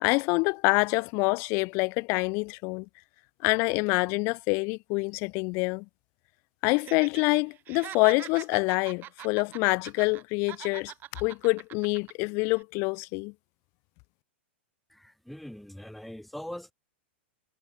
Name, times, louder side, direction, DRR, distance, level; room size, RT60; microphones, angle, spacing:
voice 1, 0.0-2.9 3.4-5.8 6.6-10.9 11.2-13.3, left 30 dB, 45° left, 0.6 m, -26 dB
Laughter, 6.7-7.2 7.5-10.2 10.5-12.1 12.5-12.6, right 13 dB, 35° right, 0.9 m, -43 dB
voice 2, 14.9-16.7, left 1 dB, ahead, 1.1 m, -42 dB
hypercardioid pair, 115°, 6 cm